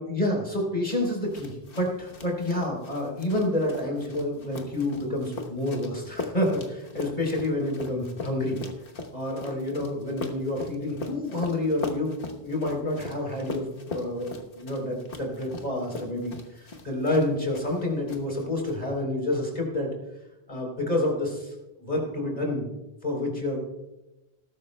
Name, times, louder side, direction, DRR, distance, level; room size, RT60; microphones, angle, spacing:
voice 1, 0.0-8.6 9.1-13.7 13.9-19.9 20.5-21.5 21.8-22.7 23.0-23.6, left 1 dB, 35° left, 0 dB, 3.9 m, -28 dB
sound 1, 1.0-17.8 18.1-18.7, left 3 dB, 55° left, 1.3 m, -40 dB
20.0 x 12.0 x 2.2 m, 0.99 s
omnidirectional pair, 1.2 m